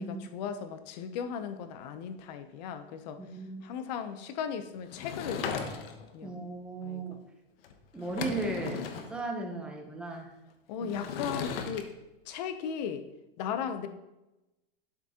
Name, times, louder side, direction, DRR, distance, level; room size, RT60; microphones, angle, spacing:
voice 1, 0.3-3.2 3.6-5.7 6.1-6.4 6.8-7.2 8.4-8.5 10.7-11.9 12.3-13.1 13.4-13.9, left 7 dB, 45° left, 10 dB, 0.8 m, -37 dB
voice 2, 3.2-3.6 6.2-7.2 7.9-10.3 10.8-11.1, right 2 dB, 5° right, 0 dB, 0.8 m, -36 dB
Sliding door / Wood, 4.9-6.1 7.6-7.7 8.0-9.1 10.9-11.8, left 6 dB, 70° left, 1.1 m, -36 dB
12.0 x 5.9 x 2.9 m, 0.98 s
supercardioid pair, 160°, 31 cm